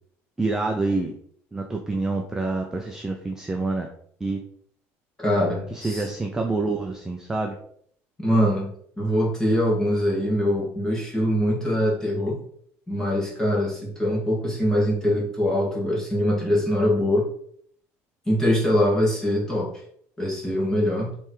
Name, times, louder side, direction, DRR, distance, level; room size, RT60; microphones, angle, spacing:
voice 1, 0.4-1.1 1.5-3.9 4.2-4.4 5.7-7.5, right 3 dB, 10° right, 2 dB, 0.6 m, -27 dB
voice 2, 5.2-6.1 8.2-8.7 9.0-12.4 12.9-17.3 18.3-19.7 20.2-21.1, equal, 10° left, -3 dB, 2.1 m, -23 dB
7.0 x 3.4 x 4.7 m, 0.63 s
cardioid pair, 165°, 6 cm